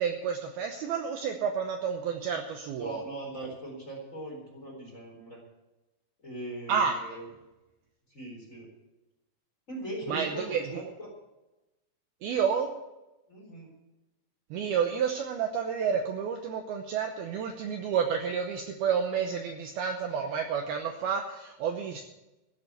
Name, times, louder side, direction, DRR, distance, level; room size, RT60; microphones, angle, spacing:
voice 1, 0.0-3.0 6.7-7.0 10.1-10.8 12.2-12.7 14.5-22.0, right 7 dB, 75° right, 4 dB, 2.5 m, -30 dB
voice 2, 2.8-5.4 6.2-7.3 8.1-8.7 9.7-11.1 13.3-13.7, right 1 dB, 20° left, -1 dB, 3.9 m, -40 dB
14.5 x 8.1 x 8.1 m, 1.0 s
omnidirectional pair, 5.2 m